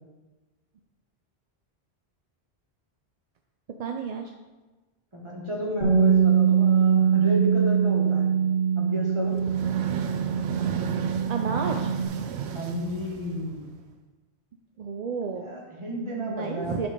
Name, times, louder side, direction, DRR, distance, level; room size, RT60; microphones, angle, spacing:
voice 1, 3.8-4.3 11.3-11.9 14.8-15.5 16.2-16.9, right 5 dB, 50° right, 3 dB, 0.5 m, -31 dB
voice 2, 5.1-8.3 8.8-9.4 12.5-13.6 15.4-16.8, equal, 25° right, -2 dB, 1.8 m, -32 dB
Bass guitar, 5.8-12.1, right 7 dB, 75° left, 3.0 m, -23 dB
sound 1, 9.2-13.8, right 6 dB, 85° right, 0.9 m, -33 dB
10.5 x 4.5 x 5.2 m, 1.2 s
omnidirectional pair, 1.1 m